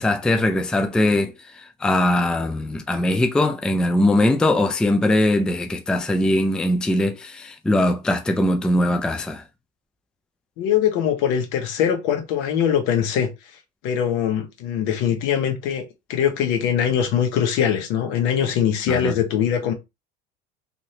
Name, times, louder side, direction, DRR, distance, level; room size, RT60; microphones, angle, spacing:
voice 1, 0.0-9.4 18.9-19.1, left 1 dB, 5° left, 0.3 m, -21 dB
voice 2, 10.6-13.3 13.8-15.8 16.1-19.7, left 8 dB, 70° left, 1.0 m, -22 dB
3.1 x 2.6 x 2.8 m
cardioid pair, 125°, 21 cm